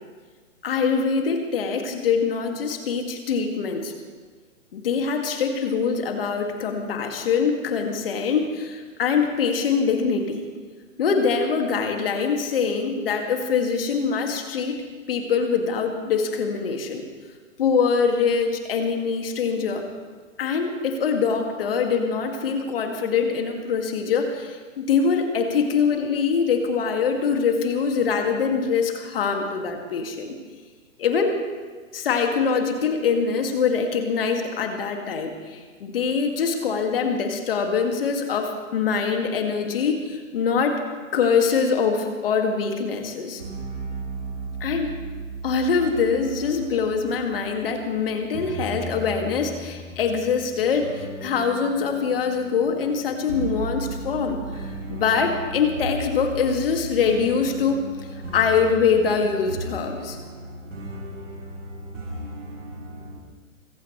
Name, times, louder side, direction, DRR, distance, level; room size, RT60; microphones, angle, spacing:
voice 1, 0.6-3.9 4.7-10.4 11.0-14.8 15.1-17.0 17.6-19.8 20.4-30.3 31.0-31.4 31.9-40.8 41.1-43.4 44.6-44.9 45.4-54.4 54.9-57.8 58.3-60.2, left 5 dB, 45° left, 4 dB, 2.2 m, -23 dB
sound 1, 43.4-63.2, right 2 dB, 65° right, 3.2 m, -36 dB
24.5 x 16.0 x 3.2 m, 1.5 s
figure-of-eight pair, 125°, 40 cm